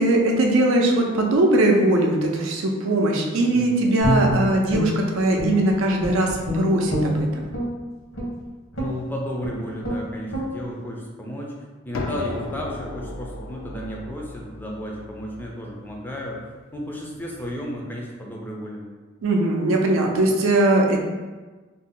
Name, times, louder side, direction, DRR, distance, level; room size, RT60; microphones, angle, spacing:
voice 1, 0.0-7.4 19.2-21.0, right 1 dB, 75° right, 1 dB, 0.4 m, -20 dB
Guitar, 4.0-5.7 6.0-7.7 8.1-8.4 8.7-9.0 9.4-9.5 9.8-10.0 10.3-10.5, equal, 70° left, 0.9 m, -25 dB
voice 2, 8.8-11.5 11.8-16.4 16.7-18.9, equal, 10° left, -2 dB, 0.4 m, -33 dB
sound 1, 11.9-17.5, left 2 dB, 85° left, 0.4 m, -36 dB
2.5 x 2.0 x 3.7 m, 1.3 s
head